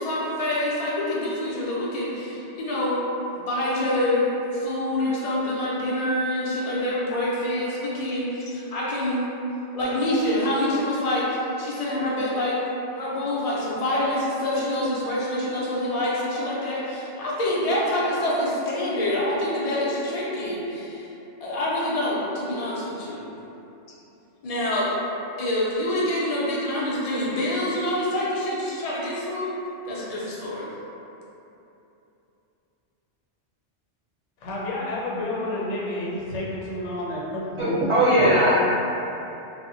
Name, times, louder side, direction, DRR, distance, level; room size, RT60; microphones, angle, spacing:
voice 1, 0.0-3.0 3.3-9.3 9.7-12.6 12.9-21.1 21.4-23.3 24.4-24.9 25.4-29.5 29.9-30.7, left 1 dB, 65° left, -7 dB, 0.3 m, -26 dB
voice 2, 34.4-37.9 38.2-38.3, left 1 dB, 80° left, -5 dB, 0.9 m, -30 dB
voice 3, 37.6-38.5, right 1 dB, 40° right, -9 dB, 0.5 m, -19 dB
2.1 x 2.0 x 3.6 m, 2.9 s
omnidirectional pair, 1.2 m